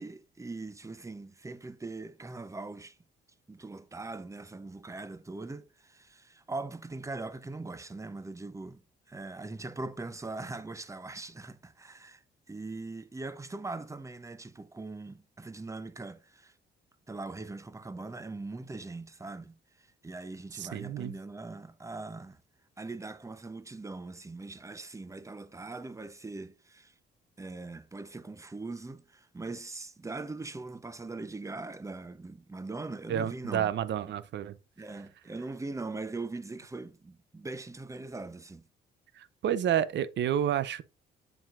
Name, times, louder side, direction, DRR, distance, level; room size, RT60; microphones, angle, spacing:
voice 1, 0.0-3.0 3.5-8.8 9.1-12.2 12.5-16.5 17.1-22.4 22.8-26.9 27.4-33.7 34.0-34.1 34.8-38.6, right 3 dB, 15° right, 0.8 m, -41 dB
voice 2, 20.6-21.1 33.1-34.6 39.2-40.8, right 10 dB, 65° right, 0.7 m, -30 dB
7.9 x 7.1 x 2.5 m
cardioid pair, 90°, 20 cm